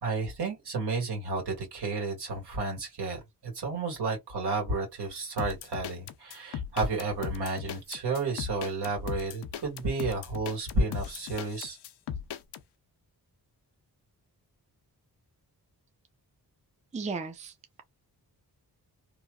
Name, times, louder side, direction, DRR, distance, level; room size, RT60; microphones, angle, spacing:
voice 1, 0.0-11.8, right 3 dB, 85° right, 1.8 m, -32 dB
sound 1, 5.4-12.6, left 8 dB, 90° left, 0.5 m, -38 dB
voice 2, 16.9-17.8, right 4 dB, 20° right, 0.4 m, -36 dB
3.0 x 2.2 x 2.3 m
wide cardioid pair, 95°, 39 cm